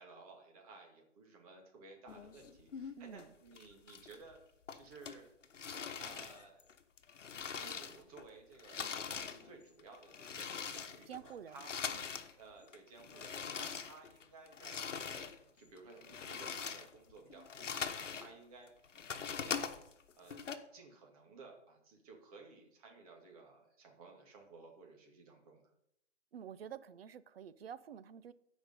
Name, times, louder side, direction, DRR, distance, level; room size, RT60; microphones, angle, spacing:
voice 1, 0.0-4.4 4.7-5.3 6.0-6.7 7.4-11.8 12.3-18.7 19.1-19.8 20.2-25.6, right 3 dB, 30° right, 2.1 m, -56 dB
sound 1, 2.1-3.2 3.6-4.4 4.7-8.3 8.5-12.3 12.6-15.4 15.8-18.3 18.7-20.5, left 6 dB, 80° left, 1.1 m, -43 dB
voice 2, 3.0-3.3 11.1-11.6 11.9-12.0 26.3-28.3, right 8 dB, 55° right, 0.6 m, -49 dB
13.0 x 5.2 x 5.2 m
hypercardioid pair, 160°, 37 cm